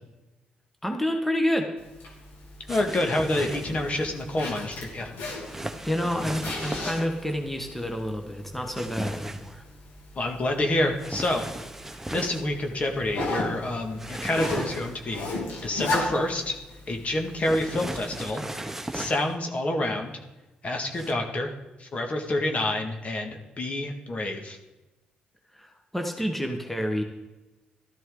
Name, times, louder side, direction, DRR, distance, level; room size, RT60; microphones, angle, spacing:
voice 1, 0.8-1.7 5.8-9.6 25.5-27.0, equal, 5° left, 4 dB, 1.4 m, -29 dB
Zipper (clothing), 1.8-18.2, left 2 dB, 80° left, 3.1 m, -37 dB
voice 2, 2.7-5.1 10.2-11.5 12.1-16.6 16.9-18.4 18.9-20.2 20.6-24.6, left 1 dB, 45° left, 3 dB, 1.9 m, -28 dB
sound 1, 2.7-3.9 5.4-7.1 8.7-9.5 11.0-12.4 14.0-15.1 17.4-19.3 20.9-21.1, right 1 dB, 10° right, 1.1 m, -36 dB
13.0 x 12.5 x 3.9 m, 1.1 s
supercardioid pair, 65°, 3 cm